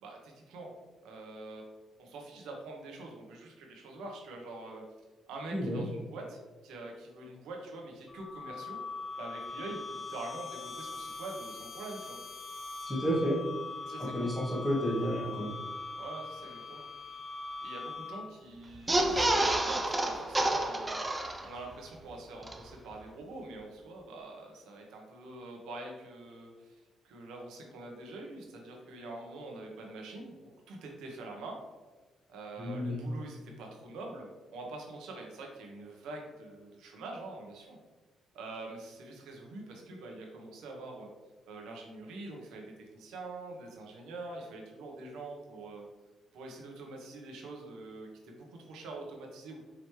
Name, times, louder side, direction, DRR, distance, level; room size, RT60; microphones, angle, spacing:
voice 1, 0.0-0.7 1.0-1.7 2.0-4.8 5.3-8.8 9.2-12.2 13.8-14.3 16.0-16.8 17.6-26.7 27.0-30.3 30.7-31.6 32.3-37.8 38.3-41.1 41.5-45.8 46.3-49.6, right 2 dB, 90° right, 0 dB, 1.0 m, -45 dB
voice 2, 5.5-5.8 12.9-13.4 14.0-15.5 32.6-33.0, equal, ahead, -8 dB, 1.1 m, -31 dB
sound 1, 8.1-18.5, left 3 dB, 35° left, 0.8 m, -42 dB
sound 2, 18.7-21.7 22.1-22.2 22.4-22.5, right 1 dB, 20° right, 0.5 m, -29 dB
4.9 x 3.0 x 3.1 m, 1.2 s
cardioid pair, 90°, 0 cm